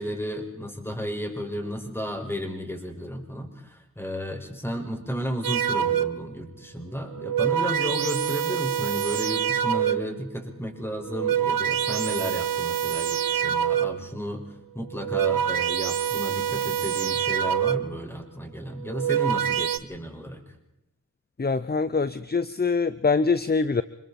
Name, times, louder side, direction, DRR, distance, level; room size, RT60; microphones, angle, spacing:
voice 1, 0.0-14.4 14.7-20.4, equal, 5° left, 3 dB, 5.7 m, -33 dB
sound 1, 5.4-6.3 7.1-10.2 11.0-14.1 14.9-18.0 18.8-19.8, right 9 dB, 80° right, 0.9 m, -26 dB
voice 2, 21.4-23.8, left 4 dB, 30° left, 14 dB, 0.8 m, -24 dB
27.0 x 22.0 x 4.4 m, 0.88 s
cardioid pair, 45°, 34 cm